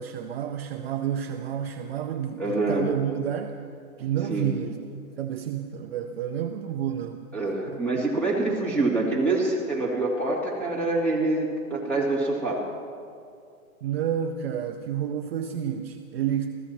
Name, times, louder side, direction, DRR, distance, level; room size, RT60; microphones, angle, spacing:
voice 1, 0.0-3.5 4.0-4.8 5.2-7.2 7.7-7.8 13.8-16.6, right 9 dB, 45° right, 5 dB, 0.7 m, -30 dB
voice 2, 2.4-2.9 4.3-4.5 7.3-12.6, right 2 dB, 5° left, -6 dB, 2.9 m, -25 dB
29.0 x 15.0 x 3.1 m, 2.3 s
hypercardioid pair, 155°, 43 cm